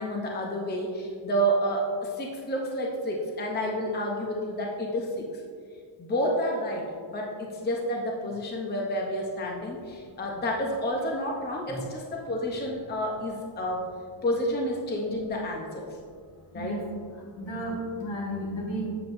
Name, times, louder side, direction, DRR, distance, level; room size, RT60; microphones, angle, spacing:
voice 1, 0.0-5.4 6.0-13.9 14.2-16.0 16.5-16.8, equal, 20° left, -1 dB, 0.6 m, -30 dB
voice 2, 17.4-18.9, equal, 60° left, -3 dB, 1.8 m, -32 dB
7.7 x 7.5 x 2.6 m, 2.2 s
wide cardioid pair, 155°, 50 cm